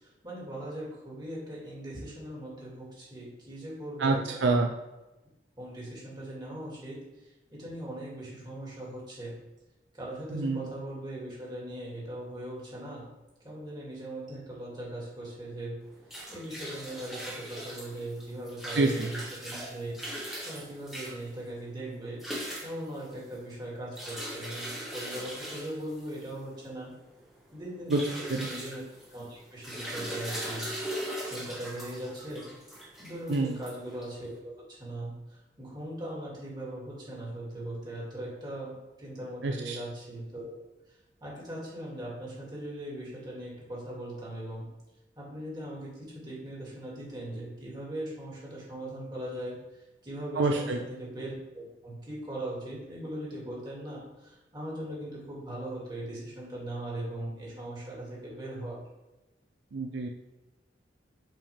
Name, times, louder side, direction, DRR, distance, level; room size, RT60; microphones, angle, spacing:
voice 1, 0.0-4.5 5.6-9.3 9.9-13.0 13.4-15.8 16.3-19.9 20.4-22.2 22.6-26.9 27.5-28.8 29.1-30.8 31.3-32.5 33.0-40.6 41.2-44.7 45.2-49.6 50.0-58.8, right 1 dB, 25° right, -5 dB, 2.4 m, -39 dB
voice 2, 4.0-4.7 10.3-10.7 18.7-19.1 27.9-28.0 28.3-28.5 33.3-33.6 39.4-39.8 50.3-50.8 59.7-60.1, right 3 dB, 70° right, 3 dB, 0.5 m, -27 dB
sound 1, 15.8-34.3, equal, ahead, 1.4 m, -40 dB
7.5 x 4.9 x 3.6 m, 1.0 s
head